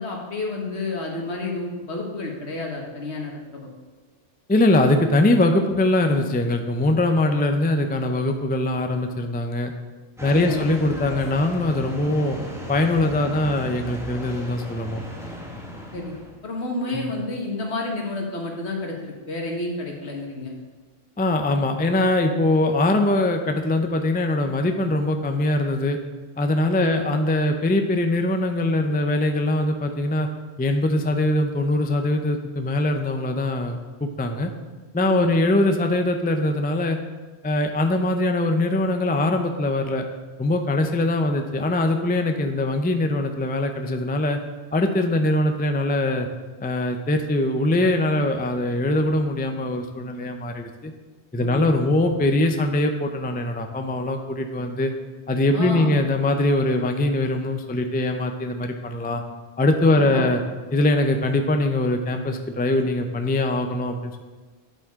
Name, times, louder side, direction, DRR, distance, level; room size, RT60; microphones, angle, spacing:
voice 1, 0.0-3.7 10.3-10.6 15.9-20.5 26.8-27.0 35.1-35.3 51.4-51.6 55.5-56.0 59.9-60.3, left 2 dB, 70° left, 0 dB, 1.8 m, -30 dB
voice 2, 4.5-9.7 10.2-12.4 12.7-15.0 16.9-17.1 21.2-26.0 26.4-30.3 30.6-34.5 34.9-37.0 37.4-40.0 40.4-44.4 44.7-46.3 46.6-50.9 51.3-54.9 55.3-59.2 59.6-60.4 60.7-64.2, left 2 dB, 15° left, 5 dB, 0.4 m, -22 dB
sound 1, 10.2-16.4, equal, ahead, 1.3 m, -36 dB
9.3 x 8.4 x 3.7 m, 1.3 s
omnidirectional pair, 1.2 m